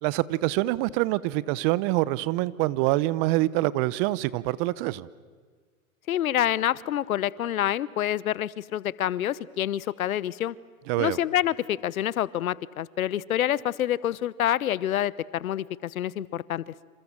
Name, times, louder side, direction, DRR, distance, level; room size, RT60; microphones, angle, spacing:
voice 1, 0.0-5.1 10.9-11.2, right 18 dB, 40° right, 20 dB, 1.0 m, -25 dB
voice 2, 6.1-10.5 11.0-16.7, left 11 dB, 75° left, 21 dB, 1.0 m, -27 dB
28.0 x 27.5 x 7.4 m, 1.5 s
hypercardioid pair, 115°, 42 cm